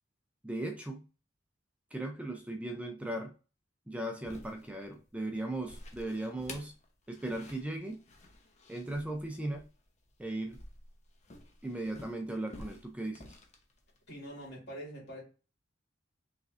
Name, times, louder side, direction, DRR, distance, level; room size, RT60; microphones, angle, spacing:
voice 1, 0.4-1.0 1.9-3.3 3.9-6.7 7.1-8.0 8.7-9.7 10.2-10.6 11.6-13.4, right 1 dB, 5° right, 4 dB, 0.5 m, -37 dB
sound 1, 4.2-14.5, left 1 dB, 35° left, 0.8 m, -51 dB
voice 2, 14.1-15.2, equal, 60° left, -3 dB, 2.4 m, -44 dB
5.2 x 3.2 x 2.5 m, 0.34 s
head